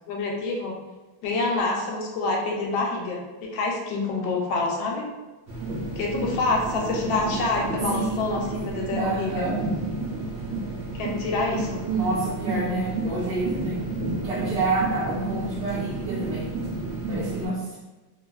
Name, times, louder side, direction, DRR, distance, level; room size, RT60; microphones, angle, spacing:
voice 1, 0.1-0.8 1.2-5.1 6.0-9.5 10.9-11.8, left 3 dB, 85° left, -1 dB, 1.3 m, -27 dB
sound 1, 5.5-17.5, right 2 dB, 90° right, 1.7 m, -31 dB
voice 2, 8.4-9.5 11.9-13.8 14.2-16.5 17.0-17.8, right 3 dB, 75° right, -8 dB, 1.4 m, -28 dB
3.5 x 2.4 x 2.3 m, 1.1 s
omnidirectional pair, 2.1 m